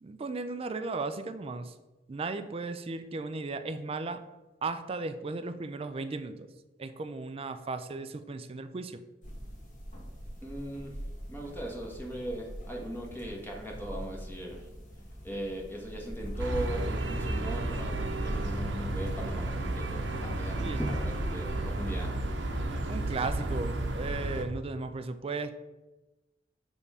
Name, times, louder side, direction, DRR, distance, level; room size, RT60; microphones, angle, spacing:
voice 1, 0.0-1.7 2.1-4.2 4.6-6.5 6.8-9.0 20.6-20.8 22.9-25.6, right 3 dB, 30° right, 10 dB, 0.4 m, -36 dB
sound 1, 9.2-24.1, equal, 45° left, 1.8 m, -42 dB
voice 2, 10.4-10.9 11.3-14.7 15.2-22.1, right 1 dB, 10° left, 0 dB, 1.2 m, -39 dB
sound 2, 16.4-24.4, right 2 dB, 80° right, 0.8 m, -32 dB
6.9 x 3.6 x 5.5 m, 1.1 s
head